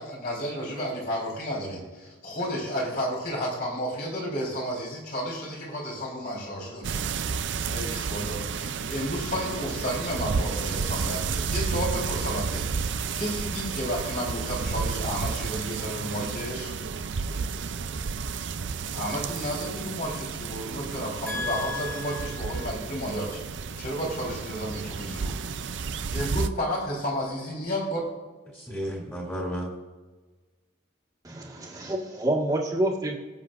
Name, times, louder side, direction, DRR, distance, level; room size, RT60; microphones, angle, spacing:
voice 1, 0.0-7.3 7.7-16.7 18.9-23.4 23.8-25.4 26.1-28.0, equal, 50° left, -4 dB, 4.1 m, -32 dB
sound 1, 6.8-26.5, right 5 dB, 70° right, 0.5 m, -31 dB
voice 2, 21.3-22.2 28.5-29.7, left 1 dB, 10° left, -3 dB, 2.7 m, -33 dB
voice 3, 31.2-33.1, right 1 dB, 20° right, -2 dB, 1.7 m, -27 dB
23.0 x 7.8 x 2.5 m, 1.3 s
head